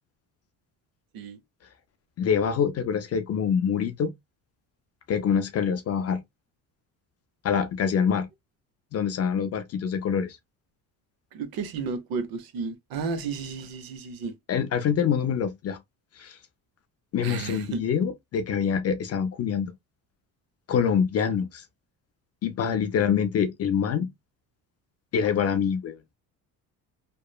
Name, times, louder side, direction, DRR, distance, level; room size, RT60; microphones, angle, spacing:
voice 1, 2.2-4.1 5.1-6.2 7.4-8.3 8.9-10.4 14.5-15.8 16.2-16.4 17.1-19.7 20.7-21.6 22.4-24.1 25.1-26.0, left 7 dB, 40° left, 0.4 m, -25 dB
voice 2, 11.3-14.3 17.2-17.8, right 5 dB, 65° right, 0.7 m, -33 dB
2.9 x 2.1 x 2.2 m
cardioid pair, 105°, 38 cm